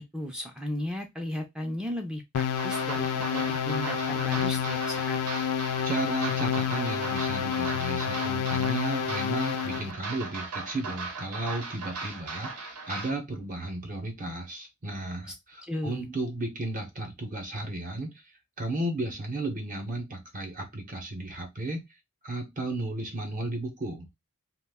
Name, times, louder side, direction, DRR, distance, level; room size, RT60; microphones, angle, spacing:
voice 1, 0.0-5.2 15.7-16.1, equal, 5° right, 3 dB, 0.3 m, -35 dB
sound 1, 2.3-9.9, left 8 dB, 75° left, 0.4 m, -29 dB
sound 2, 2.6-13.1, right 4 dB, 85° right, 0.8 m, -38 dB
voice 2, 5.8-18.1 18.6-21.8 22.2-24.1, right 2 dB, 35° right, 3 dB, 0.6 m, -34 dB
2.3 x 2.1 x 3.4 m, 0.19 s
head